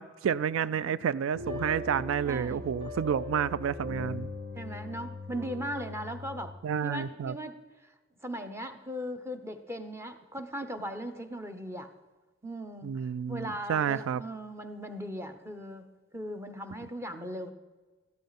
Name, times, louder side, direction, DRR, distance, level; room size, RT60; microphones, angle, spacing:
voice 1, 0.0-4.3 6.6-7.4 12.8-14.2, right 8 dB, 85° right, 0.3 m, -30 dB
voice 2, 0.6-0.9 2.2-2.6 4.6-6.6 6.8-7.5 7.8-7.9 8.2-11.9 12.4-17.5, equal, 15° right, 0.9 m, -38 dB
Piano Noodling in Dm, 1.3-6.5, left 2 dB, 60° right, 3.0 m, -39 dB
14.0 x 11.5 x 4.1 m
head